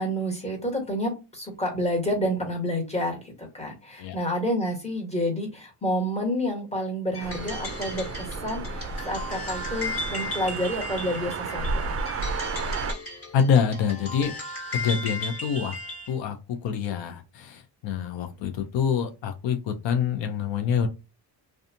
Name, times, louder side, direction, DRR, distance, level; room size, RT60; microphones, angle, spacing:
voice 1, 0.0-12.0, equal, 15° left, 0 dB, 1.4 m, -29 dB
sound 1, 7.1-16.2, left 2 dB, 30° left, 1.6 m, -36 dB
sound 2, 7.2-12.9, right 4 dB, 35° right, 0.4 m, -32 dB
voice 2, 13.3-14.3 14.7-15.8 16.1-20.9, left 7 dB, 85° left, 5 dB, 0.6 m, -26 dB
2.6 x 2.3 x 2.7 m, 0.27 s
cardioid pair, 90°, 44 cm